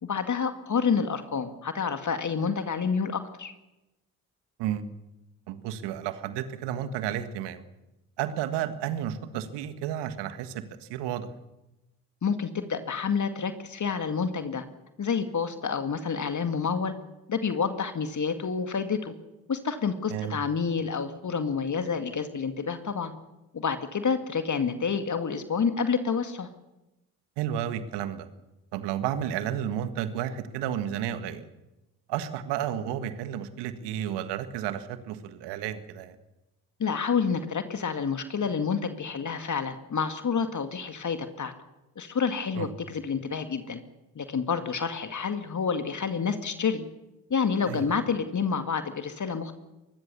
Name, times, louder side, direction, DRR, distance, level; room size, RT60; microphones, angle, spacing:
voice 1, 0.0-3.5 12.2-14.6 15.0-16.9 17.3-19.1 19.5-23.1 23.5-26.5 36.8-41.5 42.0-43.8 44.2-46.9 47.3-49.5, left 6 dB, 45° left, 8 dB, 2.1 m, -28 dB
voice 2, 5.5-7.6 8.2-11.3 20.1-20.4 27.4-28.3 28.7-31.4 32.1-36.2 42.6-42.7 47.7-47.9, right 10 dB, 75° right, 11 dB, 1.7 m, -32 dB
24.0 x 21.0 x 7.0 m, 1.0 s
hypercardioid pair, 40°, 42 cm